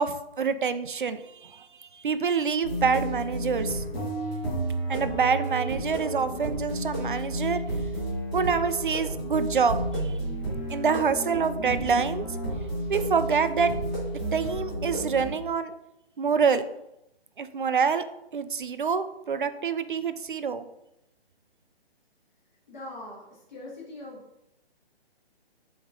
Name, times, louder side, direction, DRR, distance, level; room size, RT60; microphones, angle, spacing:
voice 1, 0.0-3.8 4.9-7.6 8.3-10.1 10.7-12.3 12.9-13.7 14.3-15.7 16.2-16.7 17.4-18.0 18.3-20.7, right 6 dB, 55° right, 11 dB, 0.5 m, -26 dB
sound 1, 2.6-15.3, right 1 dB, 10° left, 1.3 m, -31 dB
voice 2, 22.7-24.2, left 1 dB, 45° left, -5 dB, 2.1 m, -42 dB
7.3 x 3.1 x 4.8 m, 0.86 s
hypercardioid pair, 180°, 32 cm